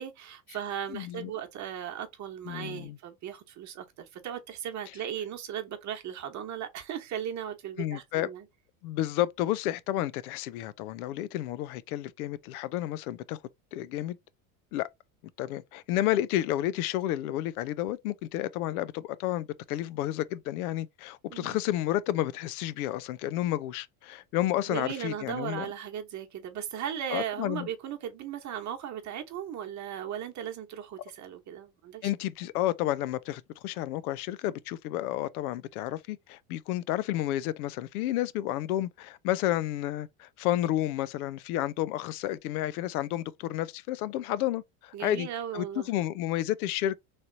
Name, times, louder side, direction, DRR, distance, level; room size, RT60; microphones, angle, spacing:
voice 1, 0.0-8.5 21.3-21.6 24.7-32.1 44.9-45.9, right 9 dB, 40° right, 1.1 m, -37 dB
voice 2, 0.9-1.3 2.5-3.0 7.8-8.3 8.8-13.4 13.7-14.2 14.7-14.9 15.4-25.7 27.1-27.7 32.0-45.3 45.5-47.0, left 13 dB, 85° left, 0.5 m, -31 dB
3.2 x 2.8 x 3.8 m
supercardioid pair, 100°, 43 cm